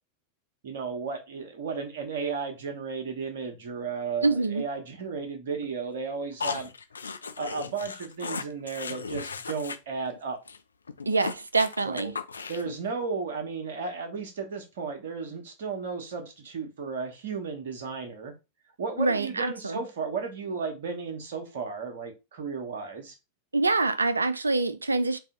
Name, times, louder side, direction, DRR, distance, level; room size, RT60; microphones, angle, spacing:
voice 1, 0.6-6.7 7.4-10.4 11.8-12.1 12.5-18.3 18.8-23.1, right 5 dB, 55° right, 1.2 m, -34 dB
voice 2, 4.2-4.7 11.1-12.2 19.0-19.8 23.5-25.2, right 3 dB, 80° right, 0.4 m, -25 dB
sound 1, 6.4-9.8 10.1-10.2 10.5-10.6 10.9-12.8, left 5 dB, 75° left, 0.4 m, -36 dB
4.7 x 2.8 x 3.6 m
figure-of-eight pair, 90°, 0 cm